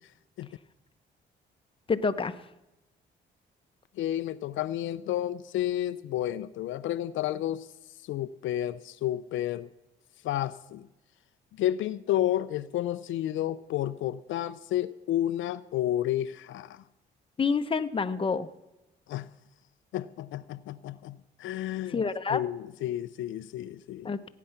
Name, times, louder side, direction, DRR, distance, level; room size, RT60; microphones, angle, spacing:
voice 1, 1.9-2.3 17.4-18.5 21.9-22.4 24.0-24.3, left 5 dB, 25° left, 10 dB, 0.8 m, -27 dB
voice 2, 4.0-7.7 8.0-9.7 10.2-10.9 11.5-16.8 19.1-19.3 19.9-24.1, left 12 dB, 80° left, 13 dB, 0.5 m, -31 dB
16.0 x 9.4 x 5.8 m, 0.97 s
cardioid pair, 90°, 20 cm